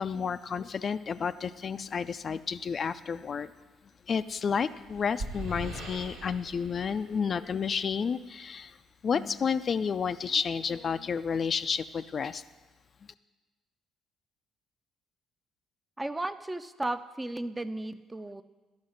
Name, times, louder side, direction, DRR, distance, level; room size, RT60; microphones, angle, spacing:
voice 1, 0.0-3.5 4.1-8.8 9.0-12.4, left 6 dB, 45° left, 11 dB, 0.4 m, -31 dB
sound 1, 4.4-8.0, right 1 dB, 85° right, 1.4 m, -41 dB
voice 2, 16.0-18.4, right 2 dB, 15° right, 11 dB, 0.5 m, -34 dB
11.5 x 5.5 x 6.3 m, 1.2 s
hypercardioid pair, 55°, 0 cm